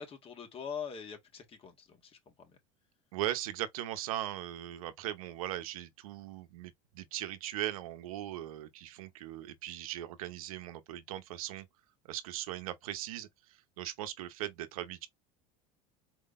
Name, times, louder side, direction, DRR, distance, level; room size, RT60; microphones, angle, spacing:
voice 1, 0.0-2.6, left 7 dB, 30° left, 1.8 m, -43 dB
voice 2, 3.1-11.7 12.0-15.1, right 13 dB, 85° right, 0.9 m, -39 dB
4.6 x 3.8 x 2.6 m
supercardioid pair, 110°, 18 cm